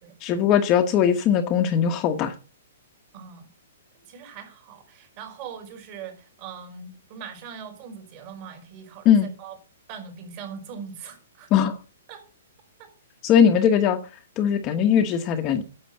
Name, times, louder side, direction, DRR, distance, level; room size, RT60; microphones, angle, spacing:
voice 1, 0.2-2.3 9.0-9.3 11.5-11.8 13.2-14.0 14.4-15.6, left 8 dB, 25° left, 1.2 m, -20 dB
voice 2, 3.1-3.5 4.0-9.6 9.9-11.5 12.1-12.2 12.8-12.9, right 6 dB, 35° right, 5.1 m, -41 dB
10.0 x 7.7 x 7.8 m
hypercardioid pair, 155°, 0 cm